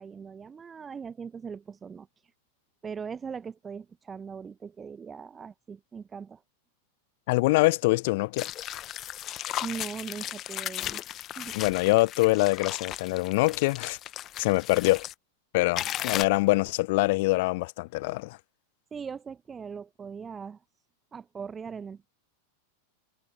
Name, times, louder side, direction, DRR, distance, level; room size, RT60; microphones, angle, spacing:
voice 1, 0.0-2.1 2.8-6.4 9.6-11.0 11.4-11.6 18.9-20.6 21.1-22.1, right 6 dB, 20° right, 1.2 m, -40 dB
voice 2, 7.3-8.5 11.5-14.0 14.4-15.1 15.5-18.4, left 22 dB, 50° left, 0.9 m, -24 dB
sound 1, 8.4-15.1 15.8-16.2, left 13 dB, 30° left, 1.3 m, -36 dB
figure-of-eight pair, 90°, 0 cm